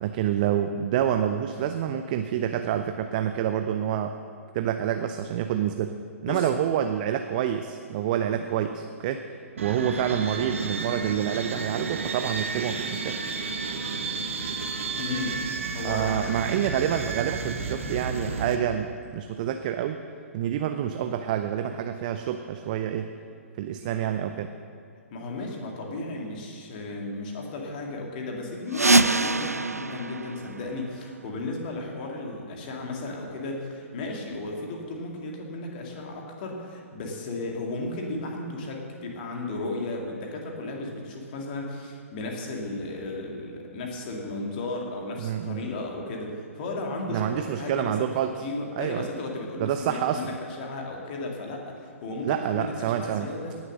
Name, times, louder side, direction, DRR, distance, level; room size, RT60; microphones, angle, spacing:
voice 1, 0.0-4.1 4.5-6.0 6.2-13.2 15.8-20.0 20.3-23.1 23.6-24.5 45.2-45.7 47.1-48.5 48.8-49.1 49.6-50.4 52.2-53.3, right 10 dB, 35° right, 7 dB, 0.6 m, -28 dB
sound 1, 9.6-18.6, right 4 dB, 60° right, 1.4 m, -32 dB
voice 2, 15.0-15.4 15.7-16.4 25.1-48.1 48.4-53.6, left 2 dB, 35° left, 0 dB, 2.4 m, -34 dB
sound 2, 28.7-31.3, right 2 dB, 85° right, 0.4 m, -24 dB
18.0 x 7.2 x 6.4 m, 2.2 s
figure-of-eight pair, 125°, 8 cm